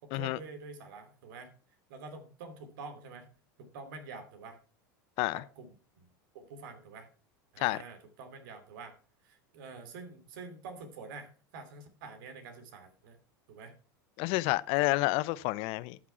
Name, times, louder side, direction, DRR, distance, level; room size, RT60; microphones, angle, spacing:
voice 1, 0.0-1.5 1.9-3.3 3.6-4.6 5.3-6.1 6.3-7.1 7.5-9.0 9.2-13.2 13.5-13.7 14.8-14.9, right 4 dB, 70° right, 2.9 m, -47 dB
voice 2, 14.2-16.0, left 20 dB, 55° left, 0.6 m, -29 dB
12.5 x 6.0 x 5.6 m
hypercardioid pair, 95°, 11 cm